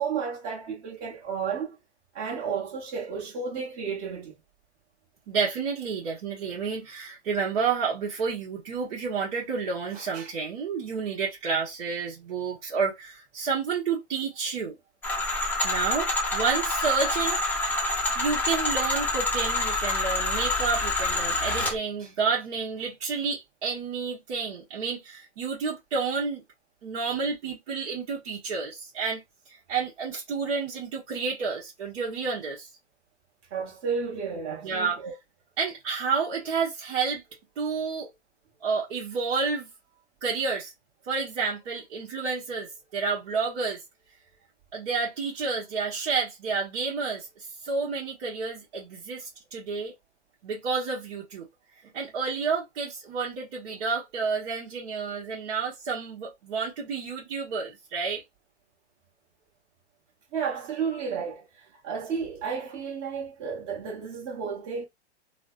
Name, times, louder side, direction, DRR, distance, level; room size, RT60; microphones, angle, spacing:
voice 1, 0.0-1.8 2.1-4.3 33.5-35.1 60.3-64.8, right 6 dB, 35° right, 1.4 m, -32 dB
voice 2, 5.3-14.7 15.6-17.4 18.1-26.4 26.8-32.7 34.6-35.0 35.6-37.2 37.6-38.1 38.6-39.7 40.2-40.7 41.0-43.8 44.7-49.9 50.4-51.5 51.8-58.2, right 5 dB, 55° right, 1.2 m, -30 dB
sound 1, 15.0-21.8, left 2 dB, 5° left, 0.6 m, -27 dB
3.2 x 2.2 x 2.5 m
hypercardioid pair, 135°, 35 cm